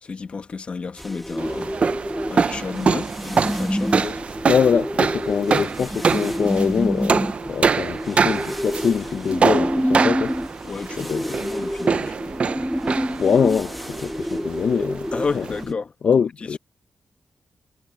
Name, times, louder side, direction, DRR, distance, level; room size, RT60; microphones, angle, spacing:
voice 1, 0.0-1.8 2.3-4.3 10.6-12.6 15.1-15.9, left 4 dB, 45° left, 1.3 m, -32 dB
sound 1, 1.0-15.7, equal, ahead, 2.0 m, -28 dB
sound 2, 1.4-15.6, right 5 dB, 50° right, 0.6 m, -25 dB
voice 2, 4.5-10.4 11.0-11.4 13.2-15.4 16.0-16.6, left 6 dB, 65° left, 0.7 m, -23 dB
cardioid pair, 85°, 3 cm